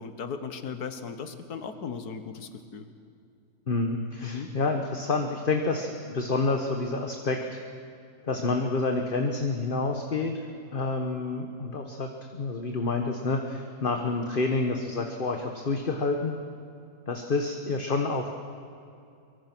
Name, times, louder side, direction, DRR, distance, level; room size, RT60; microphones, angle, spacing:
voice 1, 0.0-2.9 4.2-4.5, left 6 dB, 85° left, 9 dB, 1.9 m, -37 dB
voice 2, 3.7-7.6 8.3-10.4 10.7-16.4 17.1-18.3, left 3 dB, 35° left, 3 dB, 1.5 m, -28 dB
24.0 x 23.5 x 6.2 m, 2.4 s
omnidirectional pair, 1.6 m